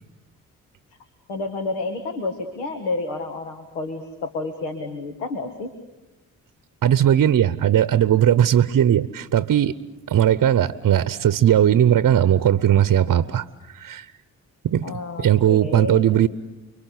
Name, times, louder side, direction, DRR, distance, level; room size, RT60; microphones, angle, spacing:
voice 1, 1.3-5.7 14.8-16.1, left 3 dB, 80° left, 6 dB, 1.8 m, -30 dB
voice 2, 6.8-9.7 10.1-14.1 14.6-14.9 15.2-16.3, right 10 dB, 50° right, 16 dB, 0.9 m, -18 dB
30.0 x 22.5 x 8.3 m, 1.0 s
hypercardioid pair, 40°, 40 cm